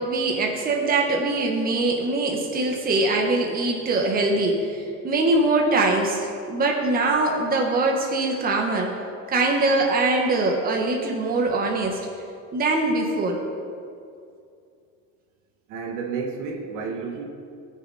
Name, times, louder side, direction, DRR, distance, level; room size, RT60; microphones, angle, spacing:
voice 1, 0.0-8.9 9.3-12.0 12.5-13.4, right 2 dB, 30° right, 0 dB, 1.4 m, -22 dB
voice 2, 15.7-17.3, right 5 dB, 70° right, 2 dB, 1.6 m, -31 dB
18.5 x 6.6 x 4.2 m, 2.4 s
cardioid pair, 155°, 32 cm